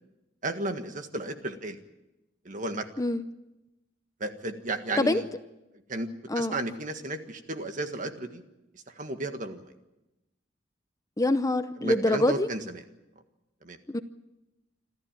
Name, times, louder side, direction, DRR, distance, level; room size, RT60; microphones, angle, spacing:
voice 1, 0.4-1.8 2.4-2.9 4.2-5.3 5.9-6.1 6.3-8.4 8.9-9.6 11.8-12.8 13.6-13.8, right 2 dB, 45° right, 7 dB, 1.7 m, -33 dB
voice 2, 11.2-12.5 13.9-14.0, left 1 dB, 20° left, 11 dB, 0.7 m, -25 dB
26.5 x 13.5 x 8.9 m, 0.98 s
head